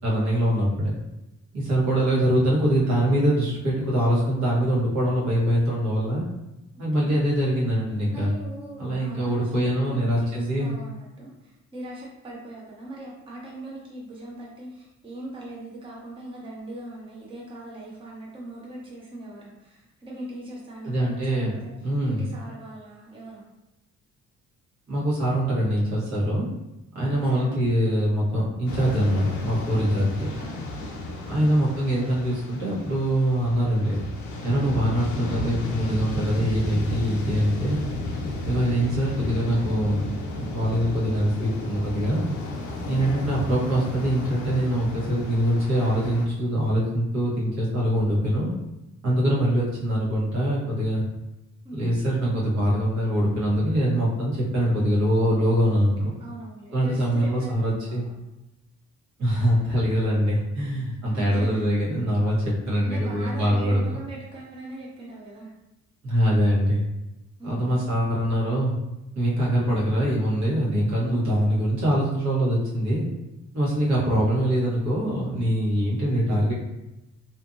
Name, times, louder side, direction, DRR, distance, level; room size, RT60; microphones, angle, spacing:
voice 1, 0.0-0.9 1.5-6.2 6.8-8.3 8.8-10.7 20.8-21.6 21.8-22.3 24.9-26.5 26.9-30.3 31.2-34.0 34.4-37.8 38.4-40.1 40.3-42.2 42.8-48.5 49.0-51.0 51.7-56.1 56.7-58.0 59.2-63.8 66.0-66.8 67.4-68.8 69.1-73.1 73.5-76.5, equal, 65° right, -6 dB, 1.2 m, -23 dB
voice 2, 8.1-21.7 22.0-23.4 27.1-27.6 29.7-31.5 34.9-35.5 42.9-43.1 51.6-51.9 55.7-58.1 59.4-59.6 61.1-61.6 62.8-65.5 67.4-67.8, right 1 dB, 15° right, -4 dB, 0.6 m, -40 dB
sound 1, 28.7-46.3, left 2 dB, 75° left, 0.6 m, -33 dB
2.7 x 2.5 x 2.5 m, 0.96 s
cardioid pair, 90°, 30 cm